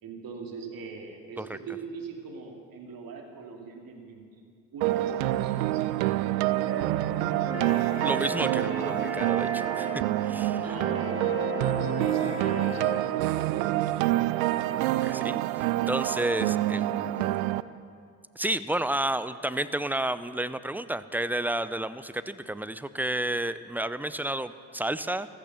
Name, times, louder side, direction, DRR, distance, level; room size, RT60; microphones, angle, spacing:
voice 1, 0.0-5.8 10.6-13.7, right 5 dB, 60° right, 2 dB, 2.8 m, -41 dB
sound 1, 4.8-17.6, right 15 dB, 85° right, 0.5 m, -27 dB
sound 2, 6.7-12.9, equal, 35° right, 3.8 m, -35 dB
voice 2, 8.0-10.6 14.8-15.4 15.9-17.3 18.4-25.3, right 1 dB, 5° right, 14 dB, 0.7 m, -31 dB
15.0 x 13.5 x 7.0 m, 2.2 s
hypercardioid pair, 50°, 40 cm